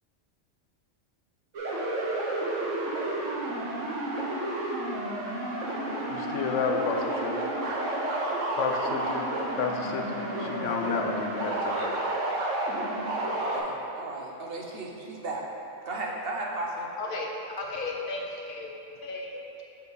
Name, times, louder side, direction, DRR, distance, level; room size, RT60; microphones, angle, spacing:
sound 1, 1.5-13.6, right 1 dB, 90° right, 1.3 m, -31 dB
voice 1, 6.1-7.4 8.6-9.2 9.5-11.9, left 5 dB, 85° left, 3 dB, 1.0 m, -31 dB
voice 2, 13.2-15.5 15.8-16.9, right 2 dB, 55° right, -2 dB, 1.0 m, -35 dB
voice 3, 17.0-18.7 19.0-19.4, left 2 dB, 55° left, 0 dB, 0.7 m, -34 dB
7.0 x 5.6 x 3.9 m, 2.9 s
omnidirectional pair, 1.2 m